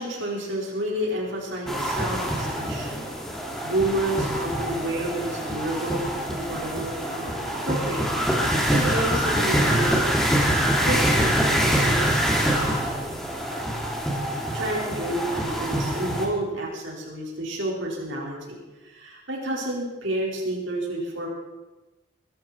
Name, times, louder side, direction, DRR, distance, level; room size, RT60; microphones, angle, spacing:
voice 1, 0.0-3.3 3.6-8.1 8.7-10.0 10.8-12.3 14.5-18.6 18.8-21.3, right 1 dB, 90° right, -3 dB, 5.2 m, -30 dB
sound 1, 1.7-16.3, equal, ahead, 2.6 m, -25 dB
22.5 x 13.5 x 4.6 m, 1.1 s
head